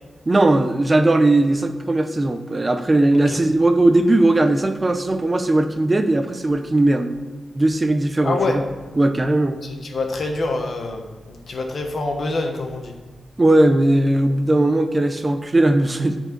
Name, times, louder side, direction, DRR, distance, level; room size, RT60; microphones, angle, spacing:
voice 1, 0.3-7.1 7.5-8.6 9.0-9.6 13.4-16.2, right 2 dB, 25° right, 8 dB, 0.6 m, -18 dB
voice 2, 8.2-8.6 9.6-12.9, left 2 dB, 55° left, 4 dB, 1.3 m, -26 dB
9.6 x 4.5 x 5.9 m, 1.4 s
wide cardioid pair, 125°, 0 cm